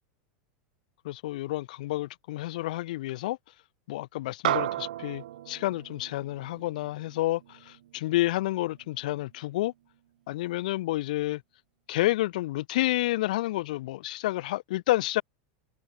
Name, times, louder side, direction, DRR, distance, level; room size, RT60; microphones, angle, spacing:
voice 1, 1.0-3.4 3.9-9.7 10.3-11.4 11.9-15.2, left 17 dB, 70° left, 0.6 m, -29 dB
sound 1, 4.4-9.1, right 13 dB, 90° right, 1.5 m, -35 dB
supercardioid pair, 155°, 4 cm